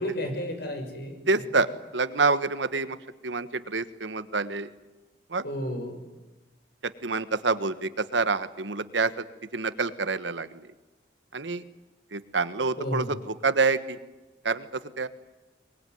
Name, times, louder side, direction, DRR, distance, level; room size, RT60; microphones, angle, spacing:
voice 1, 0.0-1.2 5.4-6.1 12.8-13.1, left 1 dB, 60° left, 5 dB, 6.5 m, -32 dB
voice 2, 1.3-3.0 3.2-4.7 5.3-5.4 6.8-9.1 9.5-10.6 11.3-11.6 12.1-14.0 14.4-15.1, right 4 dB, 80° right, 12 dB, 1.4 m, -27 dB
23.5 x 22.0 x 9.5 m, 1.1 s
head